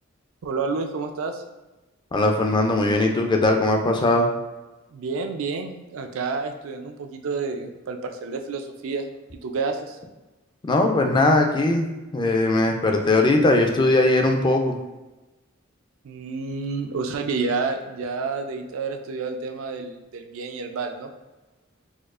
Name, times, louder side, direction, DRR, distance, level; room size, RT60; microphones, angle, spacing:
voice 1, 0.4-1.4 4.9-10.0 16.0-21.1, right 4 dB, 75° right, 5 dB, 0.4 m, -29 dB
voice 2, 2.1-4.3 10.7-11.9 12.1-14.8, left 2 dB, 25° left, 3 dB, 0.3 m, -20 dB
4.3 x 2.3 x 2.4 m, 1.1 s
head